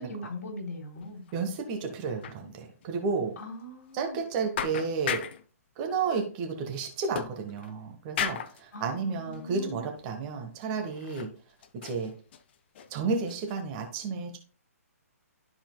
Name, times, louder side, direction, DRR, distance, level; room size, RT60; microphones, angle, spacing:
voice 1, 0.0-1.2 3.4-4.2 8.7-9.9, left 1 dB, 65° left, 0 dB, 3.7 m, -40 dB
sound 1, 1.0-1.4 1.6-1.7 2.2-2.4 2.8-2.9 3.4-3.5 4.2-4.3 4.6-5.5 7.1-7.8 8.2-8.6 9.3-9.5 10.0-10.1 10.9-11.4 11.6-12.9 13.3-13.6, left 8 dB, 40° left, 0.7 m, -35 dB
voice 2, 1.3-3.4 3.9-5.3 5.8-11.3 11.8-12.1 12.9-14.4, right 5 dB, 30° right, 4 dB, 1.2 m, -32 dB
13.0 x 4.3 x 2.2 m, 0.40 s
hypercardioid pair, 150°, 8 cm